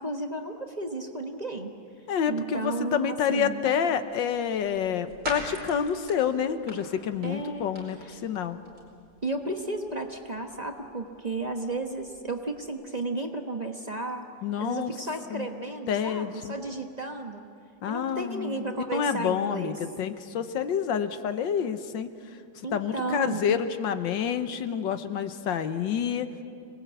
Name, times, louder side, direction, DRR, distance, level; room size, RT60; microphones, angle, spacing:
voice 1, 0.0-1.7 2.3-3.6 7.2-7.7 8.0-8.2 9.2-14.2 14.6-17.4 17.9-19.8 22.6-23.6, right 2 dB, 25° right, 3 dB, 1.1 m, -33 dB
voice 2, 2.1-8.6 14.4-14.9 15.3-15.5 15.9-16.5 17.8-22.1 22.7-26.3, left 8 dB, 85° left, 10 dB, 1.7 m, -28 dB
sound 1, 4.0-12.7, right 1 dB, 50° right, 5.3 m, -45 dB
26.0 x 20.0 x 8.3 m, 2.4 s
omnidirectional pair, 2.0 m